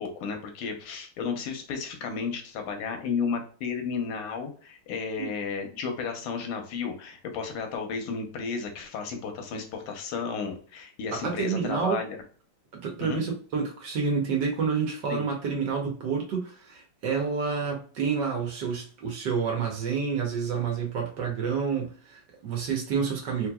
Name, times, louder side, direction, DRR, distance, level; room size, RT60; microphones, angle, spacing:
voice 1, 0.0-12.2 13.0-13.2 15.1-15.2, left 5 dB, 85° left, 4 dB, 1.7 m, -33 dB
voice 2, 11.1-12.0 12.7-23.5, right 6 dB, 60° right, 1 dB, 1.4 m, -29 dB
3.9 x 3.1 x 2.2 m, 0.42 s
omnidirectional pair, 2.4 m